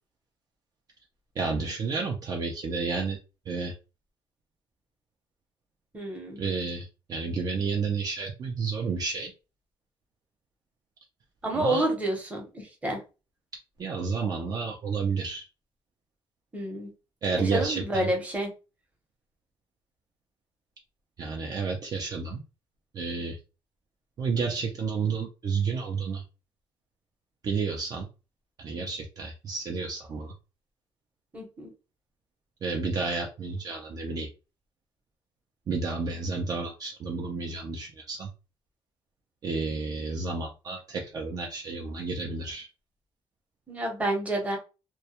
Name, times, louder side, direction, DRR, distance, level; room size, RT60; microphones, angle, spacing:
voice 1, 1.4-3.2 3.5-3.7 6.4-9.3 11.5-11.8 13.8-15.4 17.2-18.1 21.2-22.4 22.9-23.4 24.2-26.2 27.4-28.1 28.6-30.3 32.6-34.3 35.7-38.3 39.4-42.7, right 4 dB, 40° right, 0 dB, 0.4 m, -31 dB
voice 2, 5.9-6.4 11.4-13.0 16.5-16.9 17.3-18.5 31.3-31.7 43.7-44.6, right 1 dB, 15° right, 0 dB, 0.8 m, -29 dB
2.2 x 2.0 x 2.8 m, 0.31 s
cardioid pair, 145°, 10 cm